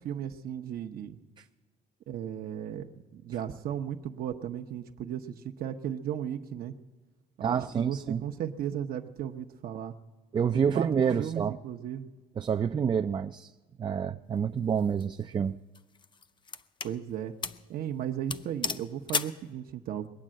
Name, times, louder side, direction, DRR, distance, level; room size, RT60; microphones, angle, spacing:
voice 1, 0.0-1.2 2.1-6.7 7.4-9.9 10.5-10.9 11.2-12.1 16.8-17.3 17.7-20.1, right 9 dB, 60° right, 5 dB, 0.8 m, -35 dB
voice 2, 7.4-8.2 10.3-11.6 12.4-13.5 13.8-15.6, right 7 dB, 25° right, 7 dB, 0.4 m, -28 dB
sound 1, 14.7-15.0 15.7-17.0 17.4-17.7 17.9-18.0 18.3-19.4, left 5 dB, 30° left, 0.5 m, -34 dB
21.0 x 8.9 x 7.5 m, 1.3 s
cardioid pair, 110°, 17 cm